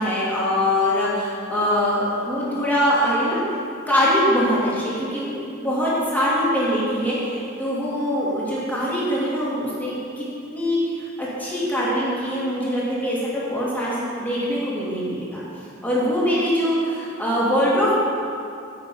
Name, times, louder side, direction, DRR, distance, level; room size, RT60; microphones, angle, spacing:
voice 1, 0.0-3.4 3.9-5.3 5.6-15.4 15.8-17.9, equal, 10° left, -8 dB, 2.7 m, -23 dB
9.3 x 8.0 x 5.5 m, 2.5 s
head